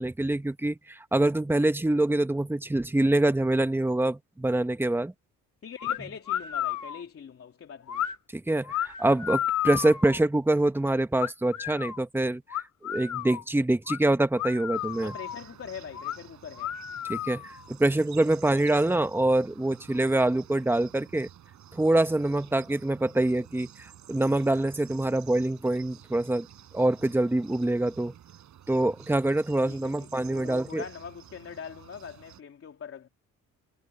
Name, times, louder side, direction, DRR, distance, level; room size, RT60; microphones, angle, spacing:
voice 1, 0.0-5.1 8.5-12.4 12.8-15.1 17.1-21.3 21.7-26.5 26.7-28.1 28.7-30.8, right 1 dB, 5° right, 1.4 m, -25 dB
voice 2, 5.6-8.1 15.0-16.8 29.7-33.1, left 7 dB, 50° left, 2.9 m, -42 dB
sound 1, 5.8-6.0 6.3-7.0 7.9-8.2 8.6-10.2 11.2-12.0 12.5-13.4 13.9-14.0 14.3-15.4 15.9-16.2 16.5-17.7, left 11 dB, 70° left, 3.4 m, -32 dB
sound 2, 14.7-32.4, right 11 dB, 70° right, 5.1 m, -51 dB
cardioid pair, 90°, 30 cm